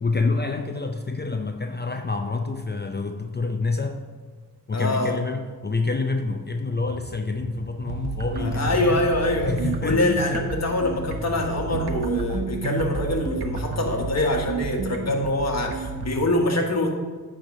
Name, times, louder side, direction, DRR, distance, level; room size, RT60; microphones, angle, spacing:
voice 1, 0.0-4.0 4.7-9.1 9.5-10.4, left 3 dB, 30° left, 5 dB, 0.5 m, -27 dB
voice 2, 4.7-5.1 8.4-9.5 9.8-16.9, left 2 dB, 45° left, 1 dB, 1.4 m, -24 dB
sound 1, 6.9-11.8, right 3 dB, 50° right, 0.6 m, -41 dB
sound 2, 7.9-16.3, right 5 dB, 90° right, 0.7 m, -31 dB
9.1 x 3.4 x 5.9 m, 1.4 s
cardioid pair, 65°, 37 cm